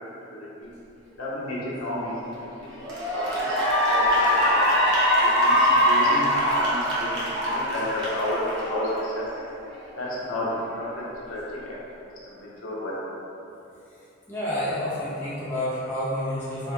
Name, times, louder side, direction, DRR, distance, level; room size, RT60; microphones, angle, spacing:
voice 1, 0.3-0.7 1.2-2.2 2.6-2.7 3.1-3.6 3.9-4.6 5.4-6.3 6.6-9.2 10.0-11.0 11.3-11.8 12.2-12.9, left 1 dB, 80° left, -6 dB, 1.0 m, -32 dB
Cheering / Applause, 2.1-2.3 2.8-9.3, equal, 55° right, 0.9 m, -22 dB
voice 2, 14.3-16.7, left 1 dB, 10° left, -12 dB, 0.8 m, -29 dB
4.8 x 2.1 x 3.9 m, 2.8 s
head